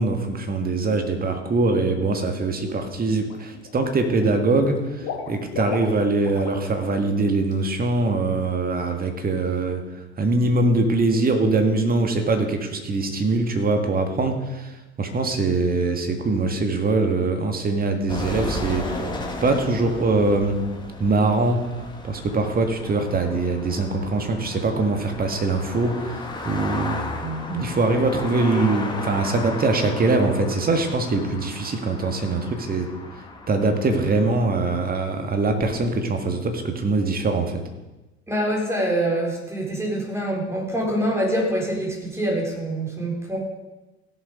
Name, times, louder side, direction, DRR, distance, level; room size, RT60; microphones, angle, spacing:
voice 1, 0.0-19.1 19.4-20.6 21.0-32.9 33.5-37.6, right 3 dB, 25° right, 5 dB, 2.0 m, -23 dB
Water / Liquid, 2.4-2.7 3.1-3.8 4.1-6.6 6.9-7.1 7.4-7.5, left 6 dB, 50° left, 2.4 m, -35 dB
sound 1, 18.1-34.8, left 2 dB, 15° left, 2.2 m, -35 dB
voice 2, 38.3-43.4, right 1 dB, 10° right, -2 dB, 4.4 m, -25 dB
15.5 x 7.1 x 5.2 m, 1.1 s
figure-of-eight pair, 70°, 33 cm